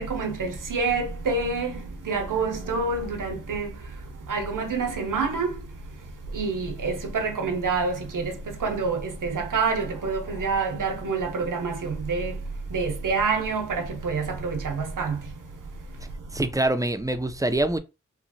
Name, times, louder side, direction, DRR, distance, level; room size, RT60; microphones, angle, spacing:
voice 1, 0.0-3.7 4.3-5.5 6.3-12.3 12.7-15.2, right 4 dB, 85° right, 0.7 m, -27 dB
voice 2, 16.3-17.8, right 1 dB, 10° right, 0.3 m, -24 dB
2.9 x 2.4 x 2.6 m
wide cardioid pair, 45°, 31 cm